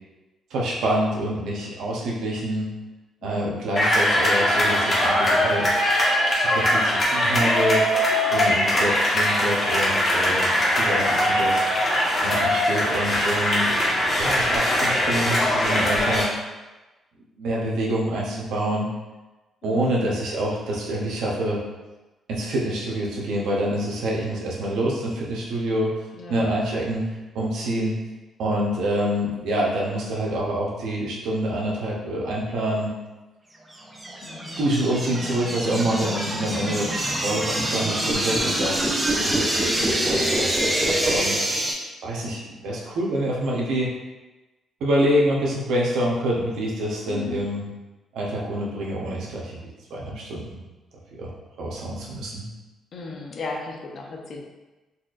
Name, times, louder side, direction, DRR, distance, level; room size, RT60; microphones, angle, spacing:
voice 1, 0.5-2.7 3.2-5.7 6.3-7.8 8.3-11.6 12.2-13.7 14.2-16.4 17.4-18.9 19.6-21.6 22.3-25.9 26.3-27.0 27.3-27.9 28.4-32.9 34.6-41.4 42.0-43.9 44.8-47.7 48.1-50.6 51.1-51.3 51.6-52.4, right 1 dB, 80° right, -4 dB, 0.8 m, -26 dB
voice 2, 3.2-3.7 19.6-20.2 26.1-26.5 34.2-34.6 41.1-41.6 47.1-47.5 52.9-54.4, left 3 dB, 55° left, 1 dB, 0.6 m, -37 dB
sound 1, 3.8-16.2, left 1 dB, 35° left, 1.2 m, -21 dB
sound 2, 33.7-41.7, right 1 dB, 20° right, 0.6 m, -25 dB
4.1 x 2.4 x 2.5 m, 1.1 s
cardioid pair, 90°, 0 cm